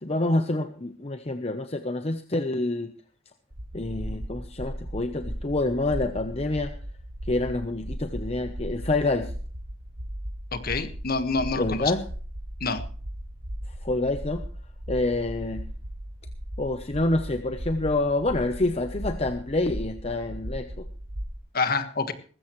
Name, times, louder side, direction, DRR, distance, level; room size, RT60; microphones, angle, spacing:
voice 1, 0.0-2.9 3.7-6.7 7.3-9.3 11.6-12.0 13.8-14.4 14.9-15.6 16.6-20.9, left 2 dB, 30° left, 7 dB, 0.9 m, -27 dB
sound 1, 3.5-21.4, equal, 70° right, 2.9 m, -37 dB
voice 2, 10.5-11.9 12.6-12.8 21.5-22.1, left 4 dB, 50° left, 9 dB, 1.6 m, -27 dB
19.5 x 15.5 x 3.2 m, 0.41 s
head